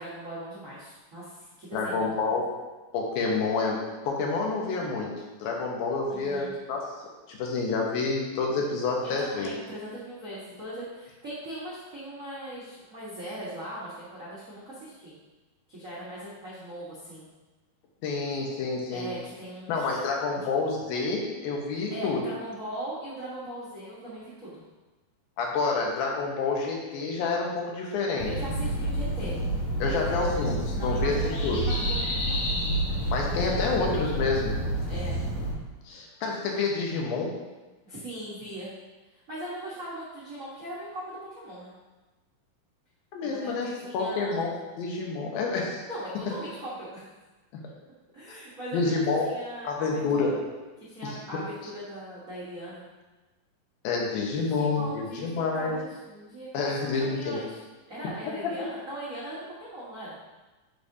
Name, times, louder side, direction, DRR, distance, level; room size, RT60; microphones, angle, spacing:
voice 1, 0.0-2.1 6.1-6.5 9.0-15.2 15.7-17.3 18.9-20.0 20.3-20.5 21.9-24.6 28.2-29.4 29.8-30.3 30.7-32.4 34.9-35.2 37.8-38.7 39.1-41.7 43.2-44.4 45.9-47.0 48.1-50.4 50.9-52.8 54.3-57.6 57.9-60.2, right 1 dB, 80° right, -8 dB, 0.7 m, -39 dB
voice 2, 1.7-2.5 2.9-5.1 5.4-6.9 7.3-9.5 18.0-19.1 19.7-22.2 25.4-28.3 29.8-31.6 33.1-34.5 35.9-37.3 43.1-45.8 48.7-49.3 49.6-50.4 51.0-51.1 53.8-55.7 56.5-57.4 58.3-58.5, left 4 dB, 85° left, -1 dB, 2.9 m, -28 dB
sound 1, 28.2-35.5, right 1 dB, 65° left, 1.5 m, -29 dB
10.0 x 5.0 x 2.8 m, 1.2 s
omnidirectional pair, 4.1 m